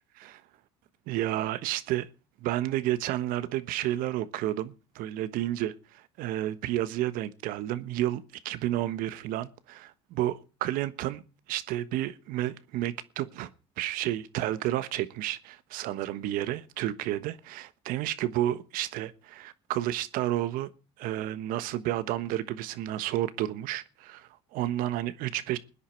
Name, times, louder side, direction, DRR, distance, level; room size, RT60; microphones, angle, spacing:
voice 1, 1.1-2.1 2.4-11.2 11.5-13.5 13.8-20.7 21.0-25.6, right 14 dB, 70° right, 1.3 m, -31 dB
20.5 x 10.0 x 4.6 m
supercardioid pair, 80°, 15 cm